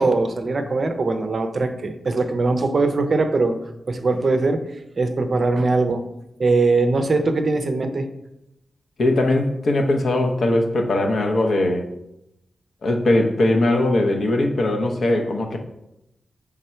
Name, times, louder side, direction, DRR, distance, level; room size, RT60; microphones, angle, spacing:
voice 1, 0.0-3.6 3.9-4.6 5.0-6.1 6.4-8.1, right 3 dB, 40° right, 8 dB, 0.5 m, -21 dB
voice 2, 9.0-11.9 12.8-15.6, left 1 dB, 55° left, 3 dB, 0.8 m, -20 dB
6.7 x 3.6 x 4.3 m, 0.86 s
wide cardioid pair, 175°, 0 cm